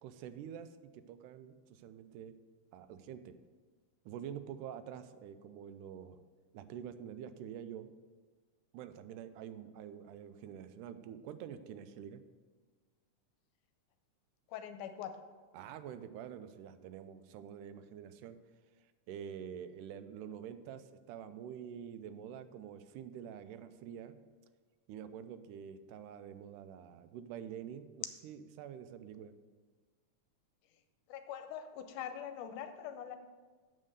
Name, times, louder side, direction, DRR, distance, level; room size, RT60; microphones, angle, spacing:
voice 1, 0.0-2.3 2.7-3.4 4.1-6.2 6.5-7.9 8.7-12.2 15.5-18.4 19.1-24.1 24.9-29.3, right 9 dB, 90° right, 11 dB, 2.1 m, -47 dB
voice 2, 14.5-15.1 31.1-33.2, left 9 dB, 90° left, 8 dB, 2.1 m, -43 dB
7.5 x 5.3 x 6.6 m, 1.5 s
omnidirectional pair, 3.6 m